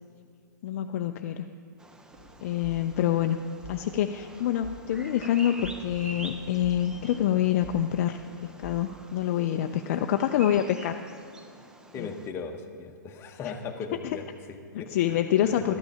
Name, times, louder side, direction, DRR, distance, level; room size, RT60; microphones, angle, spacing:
voice 1, 0.6-1.5 2.4-3.4 3.7-11.0 12.0-12.1 13.4-13.5 14.0-14.2 14.7-15.8, left 11 dB, 45° left, 7 dB, 0.4 m, -26 dB
Bird vocalization bird call bird song, 1.8-12.3, right 2 dB, 5° right, 0.5 m, -48 dB
sound 1, 2.1-9.0, equal, 40° right, 2.6 m, -48 dB
voice 2, 11.9-15.8, left 4 dB, 25° left, 4 dB, 1.0 m, -38 dB
12.5 x 8.8 x 5.6 m, 2.4 s
hypercardioid pair, 125°, 10 cm